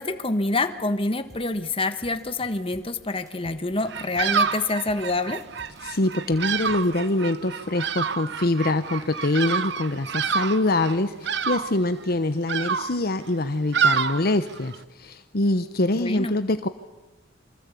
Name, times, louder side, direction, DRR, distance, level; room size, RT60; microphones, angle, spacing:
voice 1, 0.0-5.4 15.9-16.4, left 2 dB, 30° left, 9 dB, 1.5 m, -27 dB
sound 1, 1.3-7.0, equal, 20° right, 4.6 m, -51 dB
Bird vocalization bird call bird song, 3.9-14.8, right 6 dB, 65° right, 1.0 m, -28 dB
voice 2, 5.8-14.7 15.0-16.7, left 2 dB, 55° left, 10 dB, 1.0 m, -24 dB
27.5 x 24.5 x 8.5 m, 1.1 s
head